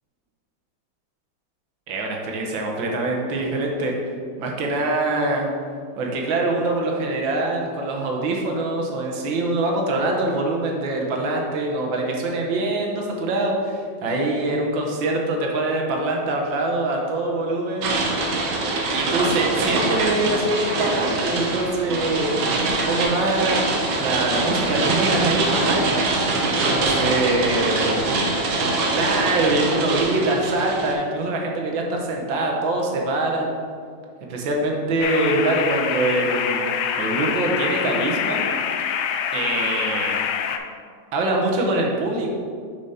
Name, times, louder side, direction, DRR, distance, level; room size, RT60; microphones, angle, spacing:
voice 1, 1.9-4.0 4.4-5.5 6.0-17.9 18.9-22.4 22.8-23.7 24.0-26.1 26.7-28.0 28.9-33.5 34.3-38.5 39.3-40.2 41.1-42.3, right 2 dB, 85° right, 0 dB, 1.7 m, -24 dB
sound 1, 17.8-30.9, right 2 dB, 70° right, 1.5 m, -23 dB
sound 2, 35.0-40.6, left 8 dB, 85° left, 1.3 m, -25 dB
6.5 x 5.2 x 4.2 m, 2.2 s
omnidirectional pair, 2.0 m